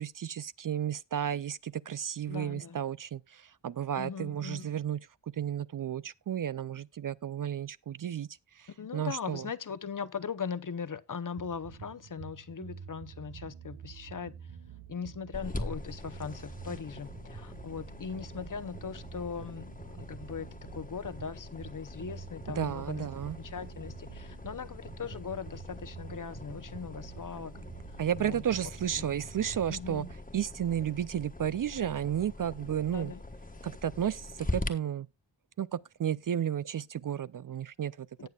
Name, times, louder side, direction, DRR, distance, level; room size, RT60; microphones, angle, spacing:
voice 1, 0.0-5.0 5.3-8.3 8.5-9.5 22.6-23.4 28.0-30.1 30.3-33.1 33.6-35.1 35.6-38.3, right 9 dB, 50° right, 0.4 m, -33 dB
voice 2, 2.3-2.8 4.0-4.7 8.8-14.3 14.9-20.5 20.8-23.1 23.4-27.5 28.2-28.4 29.0-29.1 29.7-30.1 32.9-33.2 38.2-38.3, left 6 dB, 45° left, 0.8 m, -39 dB
sound 1, 11.4-30.1, right 7 dB, 75° right, 1.1 m, -48 dB
sound 2, 15.3-34.7, left 2 dB, 20° left, 1.4 m, -43 dB
18.5 x 6.5 x 2.3 m
wide cardioid pair, 60°, 44 cm